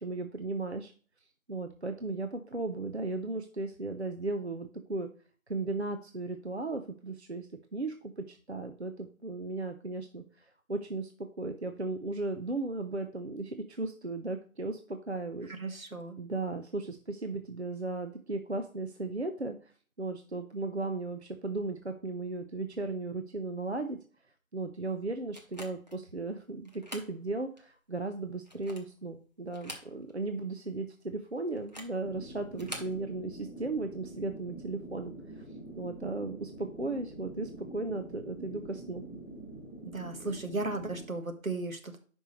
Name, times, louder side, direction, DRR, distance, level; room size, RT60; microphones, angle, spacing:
voice 1, 0.0-0.9 1.5-5.1 5.5-11.1 11.4-15.5 16.2-19.7 20.0-24.0 24.5-35.4 35.8-39.0, right 2 dB, 50° right, 6 dB, 0.6 m, -36 dB
voice 2, 15.5-16.2 39.9-42.0, right 3 dB, 70° right, 5 dB, 1.6 m, -35 dB
sound 1, 25.3-26.0 26.7-27.1 27.6-27.7 28.4-29.0 29.5-30.3 30.5-30.6 31.6-32.0 32.5-33.0, equal, 30° right, 1.0 m, -45 dB
sound 2, 32.0-41.1, right 1 dB, 20° left, 1.6 m, -46 dB
9.8 x 5.3 x 3.1 m, 0.40 s
figure-of-eight pair, 170°, 42 cm